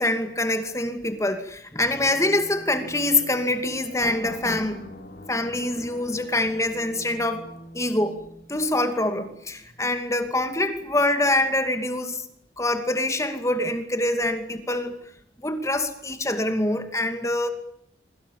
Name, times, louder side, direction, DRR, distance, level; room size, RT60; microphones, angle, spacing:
voice 1, 0.0-4.8 5.3-7.5 7.7-8.2 8.5-12.2 12.6-14.9 15.4-17.5, left 1 dB, 15° left, 2.6 m, -25 dB
sound 1, 1.9-9.3, left 1 dB, 50° left, 6.1 m, -44 dB
26.5 x 25.5 x 7.3 m
head